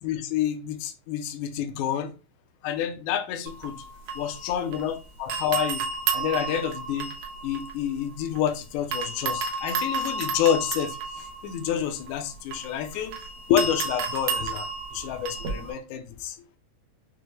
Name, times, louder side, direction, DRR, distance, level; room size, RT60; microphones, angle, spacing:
voice 1, 0.0-2.1 2.6-3.7 4.2-5.8 6.1-7.1 7.4-11.0 11.4-13.2 13.5-16.4, left 9 dB, 75° left, 7 dB, 1.9 m, -28 dB
sound 1, 3.5-5.0 5.3-8.5 8.9-15.7, right 4 dB, 80° right, 1.4 m, -32 dB
6.1 x 2.1 x 3.3 m, 0.31 s
omnidirectional pair, 3.8 m